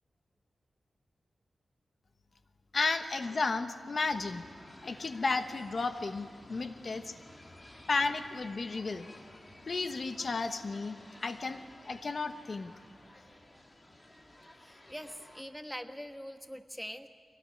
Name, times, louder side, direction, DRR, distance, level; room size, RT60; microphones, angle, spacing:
voice 1, 2.7-4.4 4.8-7.1 7.9-9.2 9.7-12.7, left 3 dB, 50° left, 9 dB, 1.1 m, -33 dB
sound 1, 4.1-15.4, left 1 dB, 25° left, 2.1 m, -54 dB
voice 2, 6.5-7.5 14.5-17.1, equal, 5° left, 7 dB, 1.3 m, -45 dB
24.0 x 19.0 x 9.7 m, 2.2 s
wide cardioid pair, 80°, 0 cm